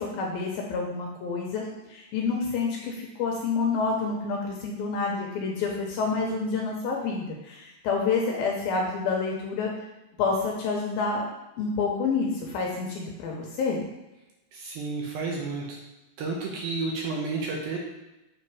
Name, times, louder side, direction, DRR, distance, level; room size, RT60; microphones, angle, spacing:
voice 1, 0.0-9.7 10.2-11.2 11.6-13.8, left 4 dB, 75° left, -1 dB, 2.3 m, -28 dB
voice 2, 14.5-15.8 16.2-17.8, right 3 dB, 70° right, -1 dB, 2.4 m, -31 dB
7.7 x 3.9 x 4.7 m, 0.98 s
omnidirectional pair, 4.9 m